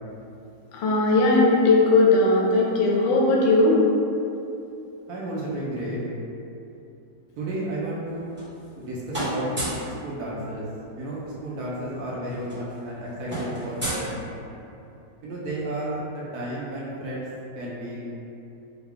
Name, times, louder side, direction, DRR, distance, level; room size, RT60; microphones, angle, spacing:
voice 1, 0.7-3.8, left 2 dB, 85° left, -3 dB, 1.4 m, -18 dB
voice 2, 5.1-6.0 7.4-8.3 8.8-9.5 9.8-10.7 11.0-14.2 15.2-17.3 17.5-18.0, right 1 dB, 65° right, -6 dB, 1.1 m, -32 dB
sound 1, 8.0-8.8 9.1-9.9 11.3-11.4 11.6-11.8 12.1-14.7, right 1 dB, 10° right, 1.0 m, -32 dB
4.7 x 2.2 x 3.5 m, 2.7 s
omnidirectional pair, 2.0 m